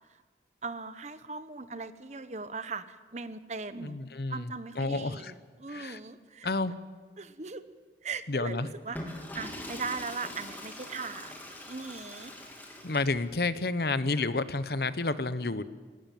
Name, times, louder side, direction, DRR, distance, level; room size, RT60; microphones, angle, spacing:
voice 1, 0.6-4.0 4.3-6.5 7.2-7.8 8.0-12.3, right 4 dB, 40° right, 12 dB, 1.0 m, -39 dB
voice 2, 3.8-5.3 5.7-6.0 6.4-6.7 8.3-8.7 12.8-15.6, left 3 dB, 60° left, 14 dB, 0.9 m, -30 dB
Water / Toilet flush, 8.8-13.3, left 1 dB, 10° left, 3.1 m, -43 dB
19.5 x 17.5 x 9.2 m, 1.5 s
head